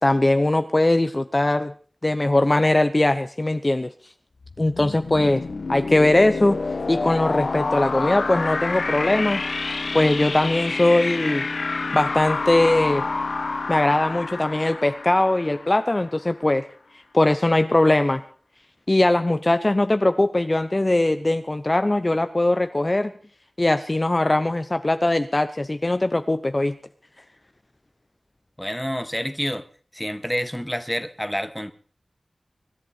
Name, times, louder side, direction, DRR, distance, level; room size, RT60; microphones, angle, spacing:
voice 1, 0.0-1.7 2.0-3.9 4.6-6.6 6.9-9.4 9.9-11.5 11.9-13.0 13.7-16.6 17.1-18.2 18.9-23.1 23.6-26.8, left 2 dB, 35° left, 10 dB, 0.7 m, -20 dB
sound 1, 4.4-16.1, left 3 dB, 85° left, 1.0 m, -28 dB
voice 2, 28.6-29.6 29.9-31.7, equal, 5° left, 12 dB, 1.2 m, -28 dB
24.0 x 11.0 x 4.3 m, 0.41 s
wide cardioid pair, 70°, 0 cm